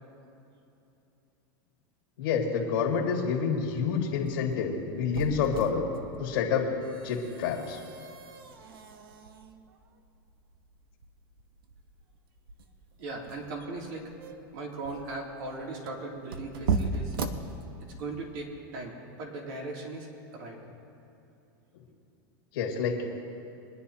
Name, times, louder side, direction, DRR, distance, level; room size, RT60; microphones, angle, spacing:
voice 1, 2.2-5.8 6.2-6.7 7.0-7.8 22.5-23.1, left 6 dB, 80° left, -1 dB, 2.0 m, -28 dB
sound 1, 4.0-18.2, right 4 dB, 90° right, 1.0 m, -38 dB
voice 2, 13.0-14.1 14.5-17.2 17.9-18.9 19.2-20.6, right 2 dB, 65° right, -1 dB, 2.7 m, -38 dB
23.5 x 10.5 x 2.8 m, 2.9 s
supercardioid pair, 130°, 12 cm